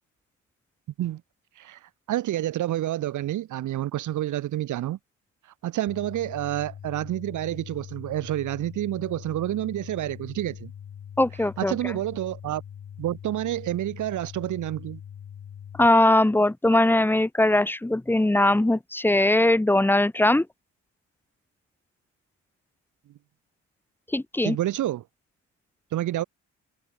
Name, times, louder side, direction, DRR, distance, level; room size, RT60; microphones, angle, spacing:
voice 1, 2.1-5.0 5.6-10.7 11.6-12.6 13.0-15.0 24.4-25.0 25.9-26.2, right 13 dB, 80° right, 2.4 m, -28 dB
sound 1, 5.9-15.9, left 8 dB, 60° left, 7.2 m, -42 dB
voice 2, 11.2-11.9 15.8-20.5 24.1-24.6, left 1 dB, 5° left, 0.8 m, -20 dB
cardioid pair, 90°, 30 cm